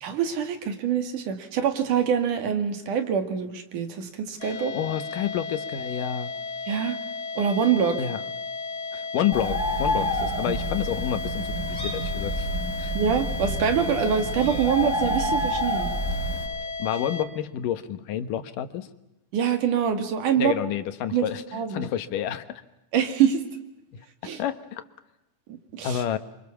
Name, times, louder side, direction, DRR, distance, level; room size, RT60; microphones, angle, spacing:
voice 1, 0.0-4.8 6.7-7.0 7.4-8.0 12.9-15.9 19.3-20.5 21.1-21.8 22.9-23.4 24.2-24.4 25.5-26.0, right 8 dB, 75° right, 7 dB, 3.7 m, -25 dB
sound 1, 4.4-17.3, left 4 dB, 75° left, 3.2 m, -34 dB
voice 2, 4.5-6.3 8.0-8.2 8.9-12.5 12.8-12.9 16.6-18.9 20.4-22.4 23.9-24.8 25.8-26.2, left 10 dB, 90° left, 11 dB, 2.9 m, -29 dB
Bird, 9.3-16.4, equal, 5° right, 6.5 m, -28 dB
29.0 x 25.0 x 7.1 m, 0.91 s
omnidirectional pair, 3.7 m